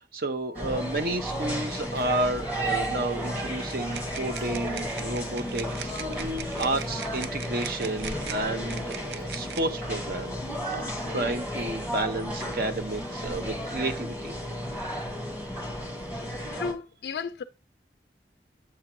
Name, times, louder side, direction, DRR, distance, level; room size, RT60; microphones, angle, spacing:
voice 1, 0.0-6.3 6.6-10.4 10.7-10.8 11.1-14.3, right 2 dB, 55° right, 0.8 m, -31 dB
sound 1, 0.5-16.7, equal, 10° right, 1.6 m, -33 dB
Mechanical fan, 1.9-13.9, left 1 dB, 30° right, 2.0 m, -47 dB
sound 2, 3.9-9.6, right 8 dB, 75° right, 0.5 m, -41 dB
voice 2, 16.5-17.4, left 5 dB, 75° left, 0.3 m, -35 dB
7.7 x 3.6 x 4.5 m
head